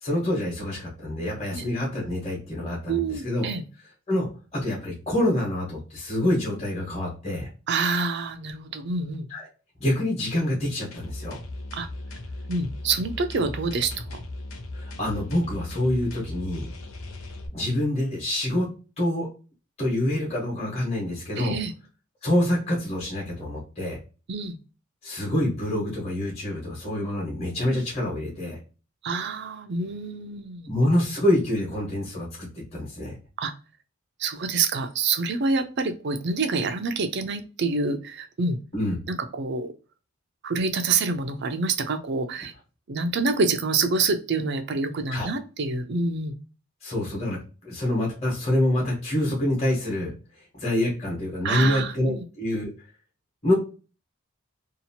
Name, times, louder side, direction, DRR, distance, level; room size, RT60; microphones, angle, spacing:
voice 1, 0.0-3.5 4.1-7.5 9.3-9.4 9.8-11.4 14.7-16.7 17.5-18.7 19.0-19.3 19.8-21.6 22.2-24.0 25.0-28.6 30.7-33.1 38.7-38.9 45.1-45.3 46.8-50.1 50.5-52.7 53.4-53.5, left 1 dB, 30° left, -3 dB, 1.2 m, -26 dB
voice 2, 2.9-3.6 7.7-9.3 11.7-11.9 12.5-14.2 21.4-21.7 24.3-24.6 29.0-30.7 33.4-33.5 34.2-38.6 39.1-39.7 40.4-42.5 42.9-46.4 51.4-52.2, right 4 dB, 55° right, 8 dB, 0.5 m, -27 dB
sound 1, 10.9-17.5, left 2 dB, 85° left, 0.7 m, -37 dB
2.8 x 2.4 x 2.7 m, 0.34 s
head